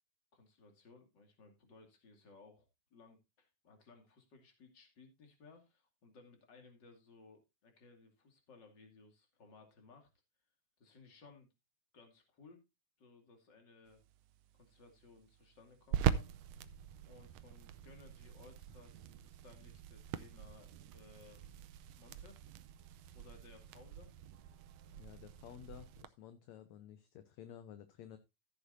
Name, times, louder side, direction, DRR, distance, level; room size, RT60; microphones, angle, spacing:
voice 1, 0.3-2.6 2.9-10.1 10.8-11.5 11.9-12.7 13.0-14.0 14.5-16.3 17.0-21.7 22.0-22.4 23.1-24.1, left 3 dB, 35° left, 4 dB, 2.8 m, -61 dB
sound 1, 13.9-26.1, right 10 dB, 85° right, 1.4 m, -42 dB
voice 2, 24.9-28.2, left 10 dB, 70° left, 10 dB, 1.8 m, -53 dB
15.0 x 8.4 x 2.6 m, 0.24 s
omnidirectional pair, 3.8 m